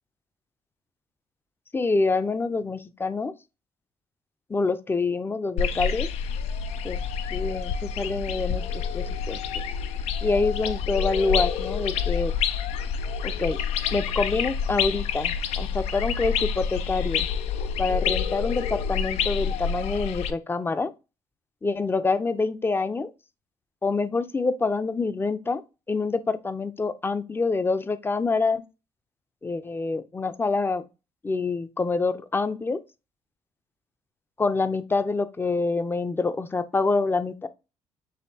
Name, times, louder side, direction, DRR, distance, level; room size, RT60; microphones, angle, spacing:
voice 1, 1.7-3.3 4.5-6.1 6.8-7.0 7.3-8.6 8.9-9.6 10.2-12.3 13.2-13.6 13.9-17.3 17.8-20.9 21.6-23.1 23.8-25.6 25.9-28.6 29.4-30.8 31.2-32.8 34.4-37.5, left 3 dB, 20° left, 0.5 m, -26 dB
sound 1, 5.6-20.3, left 7 dB, 85° left, 0.5 m, -28 dB
6.3 x 2.9 x 2.7 m
cardioid pair, 80°, 11 cm